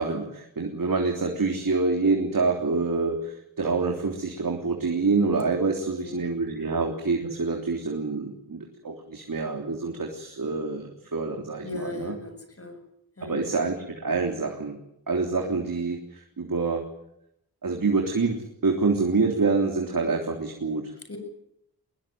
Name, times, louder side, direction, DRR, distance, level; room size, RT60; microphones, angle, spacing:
voice 1, 0.0-12.1 13.3-14.8 15.1-16.8 17.6-20.9, right 4 dB, 60° right, 2 dB, 3.5 m, -26 dB
voice 2, 5.8-6.2 6.6-6.7 11.6-12.8 13.2-13.5 21.1-21.2, left 2 dB, 40° left, 7 dB, 7.9 m, -38 dB
22.5 x 21.0 x 9.4 m, 0.78 s
wide cardioid pair, 65°, 37 cm